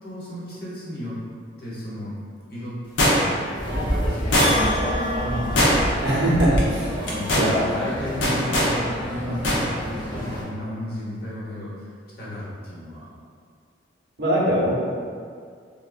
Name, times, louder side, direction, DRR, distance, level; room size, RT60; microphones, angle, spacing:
voice 1, 0.0-1.2 1.6-2.1 2.5-2.7 3.1-3.5 3.8-6.6 7.1-11.9 12.2-13.1, equal, 55° left, -7 dB, 0.9 m, -33 dB
sound 1, 3.0-3.5 4.3-4.8 5.5-6.1 6.4-6.6 7.0-7.5 8.2-8.7 9.4-9.6 9.9-10.0, equal, 80° left, 0.6 m, -20 dB
sound 2, 3.5-10.4, equal, 25° left, 0.5 m, -28 dB
Bell, 4.4-6.5, left 1 dB, 30° right, 0.7 m, -30 dB
voice 2, 6.0-7.6 14.2-14.8, right 1 dB, 65° right, -5 dB, 0.7 m, -22 dB
3.5 x 2.1 x 2.4 m, 2.1 s
head